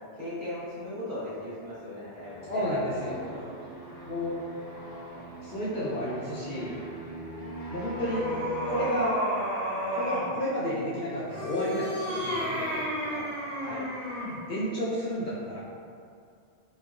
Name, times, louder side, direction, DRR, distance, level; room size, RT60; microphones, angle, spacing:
voice 1, 0.1-2.6 3.3-3.7 6.9-7.0 13.5-13.8, left 1 dB, 50° right, -11 dB, 1.0 m, -38 dB
sound 1, 2.2-8.9, equal, 20° right, 1.1 m, -42 dB
voice 2, 2.5-3.2 4.1-4.4 5.4-6.7 7.7-8.3 8.7-9.2 9.9-13.2 14.5-15.6, equal, 60° left, -9 dB, 0.6 m, -31 dB
sound 2, 7.3-10.3 11.2-14.4, equal, 85° right, 1.5 m, -32 dB
3.0 x 2.1 x 2.4 m, 2.4 s
omnidirectional pair, 1.2 m